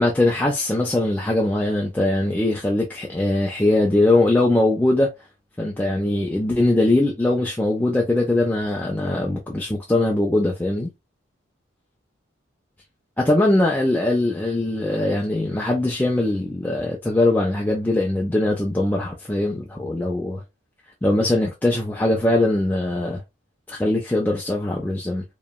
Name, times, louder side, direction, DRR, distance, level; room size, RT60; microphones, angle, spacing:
voice 1, 0.0-5.1 5.6-10.9 13.2-20.4 21.0-23.2 23.7-25.2, left 2 dB, 10° left, 0.3 m, -21 dB
2.9 x 2.2 x 2.3 m
head